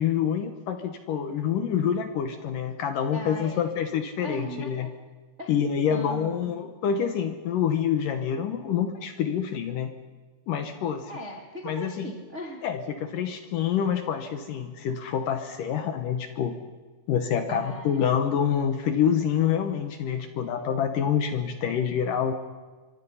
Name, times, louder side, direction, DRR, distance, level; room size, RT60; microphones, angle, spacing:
voice 1, 0.0-4.9 5.5-9.9 10.5-11.1 11.6-12.1 12.6-16.6 17.1-22.3, left 8 dB, 70° left, 8 dB, 2.2 m, -27 dB
voice 2, 3.1-3.7 4.2-4.9 5.4-5.6 5.9-6.5 11.1-12.6 17.5-18.1, right 1 dB, 65° right, 2 dB, 0.6 m, -38 dB
24.5 x 24.5 x 5.6 m, 1.3 s
omnidirectional pair, 5.0 m